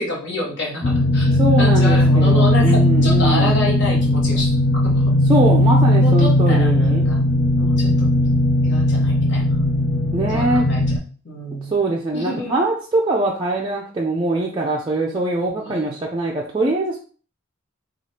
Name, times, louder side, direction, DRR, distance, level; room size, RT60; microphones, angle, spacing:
voice 1, 0.0-1.3 1.6-4.5 4.8-5.1 6.0-7.2 7.6-8.1 8.6-9.6 10.3-10.8 11.2-11.8 12.1-12.5 15.5-15.9, left 2 dB, 55° left, -1 dB, 1.1 m, -28 dB
sound 1, 0.8-11.0, left 1 dB, 40° left, 0.4 m, -17 dB
voice 2, 1.3-3.6 5.3-7.1 10.1-10.7 11.6-17.0, right 2 dB, 25° right, -2 dB, 0.4 m, -22 dB
3.1 x 2.4 x 4.2 m, 0.40 s
head